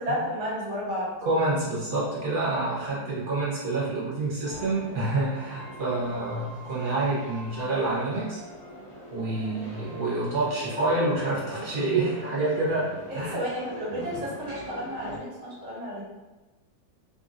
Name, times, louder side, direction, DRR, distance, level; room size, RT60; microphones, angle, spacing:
voice 1, 0.0-1.1 2.9-3.1 9.3-9.6 13.3-16.0, equal, 75° right, -7 dB, 1.8 m, -32 dB
voice 2, 1.2-8.4 9.1-12.9 13.1-13.4, right 2 dB, 55° right, -8 dB, 0.5 m, -27 dB
sound 1, 4.4-15.2, equal, 65° left, 0.4 m, -42 dB
3.5 x 2.5 x 2.5 m, 1.2 s
omnidirectional pair, 2.1 m